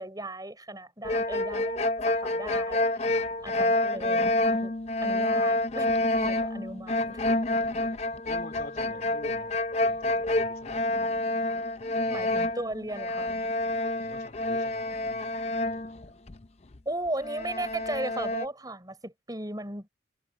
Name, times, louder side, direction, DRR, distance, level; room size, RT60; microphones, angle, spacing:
voice 1, 0.0-2.8 3.4-4.3 4.6-4.7 5.0-7.3 12.1-13.3 16.8-19.9, right 1 dB, 20° right, 6.2 m, -36 dB
sound 1, 1.0-16.4 16.7-16.8 17.2-18.5, left 2 dB, 30° left, 0.5 m, -28 dB
voice 2, 3.0-3.4 8.3-10.8 12.0-12.5 13.9-16.1, left 2 dB, 50° left, 3.4 m, -48 dB
head